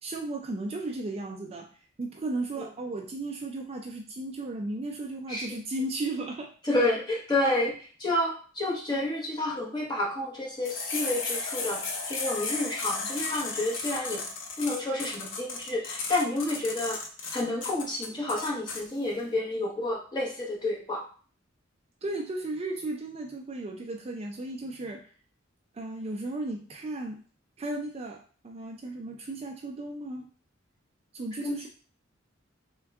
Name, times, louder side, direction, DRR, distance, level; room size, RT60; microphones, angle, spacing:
voice 1, 0.0-1.7 2.0-6.5 22.0-25.1 25.7-27.2 27.6-30.3 31.1-31.7, right 2 dB, 30° right, 1 dB, 0.4 m, -35 dB
voice 2, 6.7-7.7 8.0-11.8 12.1-14.2 14.6-17.0 17.3-21.0 31.4-31.7, left 1 dB, 20° left, -4 dB, 1.1 m, -29 dB
sound 1, 10.6-18.8, left 4 dB, 65° left, 0.6 m, -34 dB
3.5 x 2.2 x 3.4 m, 0.41 s
head